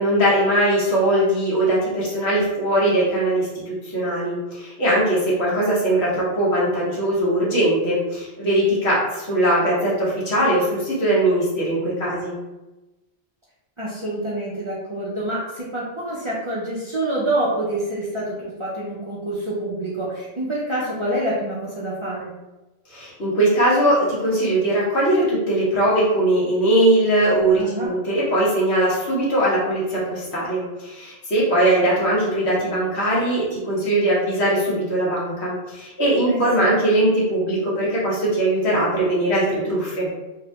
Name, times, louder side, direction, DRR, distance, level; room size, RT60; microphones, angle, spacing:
voice 1, 0.0-12.3 22.9-40.1, right 1 dB, 80° left, -6 dB, 1.3 m, -20 dB
voice 2, 13.8-22.3 27.6-27.9 36.3-36.8, right 1 dB, 40° right, -7 dB, 0.4 m, -27 dB
2.9 x 2.1 x 2.8 m, 1.1 s
omnidirectional pair, 1.1 m